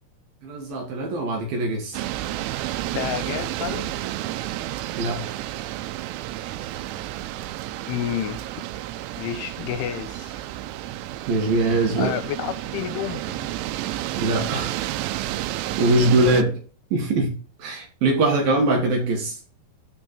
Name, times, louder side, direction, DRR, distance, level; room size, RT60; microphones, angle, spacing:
voice 1, 0.4-2.0 5.0-5.2 11.3-12.1 14.2-14.8 15.8-16.6 16.9-17.3 17.6-19.4, right 2 dB, 60° right, 2.9 m, -22 dB
sound 1, 1.9-16.4, right 14 dB, 85° right, 3.1 m, -31 dB
voice 2, 2.9-3.9 7.9-8.4 9.2-10.4 12.0-13.5, left 11 dB, 85° left, 3.1 m, -30 dB
12.0 x 4.6 x 4.2 m
omnidirectional pair, 5.7 m